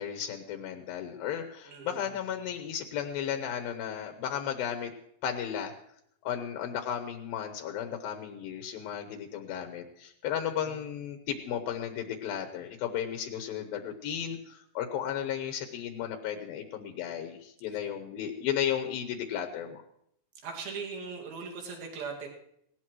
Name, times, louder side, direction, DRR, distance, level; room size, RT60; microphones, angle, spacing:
voice 1, 0.0-4.9 5.2-5.7 6.2-19.8, left 9 dB, 80° left, 5 dB, 2.8 m, -34 dB
voice 2, 1.7-2.1 10.5-10.8 20.4-22.3, right 5 dB, 75° right, 0 dB, 4.0 m, -40 dB
19.0 x 18.0 x 3.1 m, 0.72 s
omnidirectional pair, 4.4 m